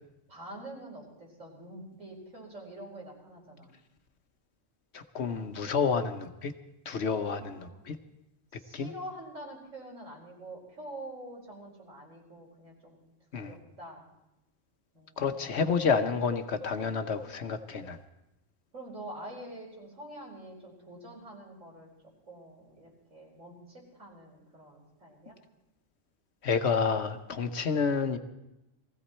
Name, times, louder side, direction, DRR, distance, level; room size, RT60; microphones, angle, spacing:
voice 1, 0.3-3.7 7.0-7.8 8.5-13.0 13.3-14.0 14.9-15.7 18.7-21.9 22.3-25.4, right 1 dB, 75° right, -2 dB, 4.7 m, -46 dB
voice 2, 4.9-6.5 6.9-8.0 8.7-8.9 13.3-13.5 15.2-18.0 26.4-28.2, left 5 dB, 60° left, 8 dB, 1.1 m, -29 dB
19.5 x 15.0 x 4.3 m, 0.91 s
omnidirectional pair, 1.3 m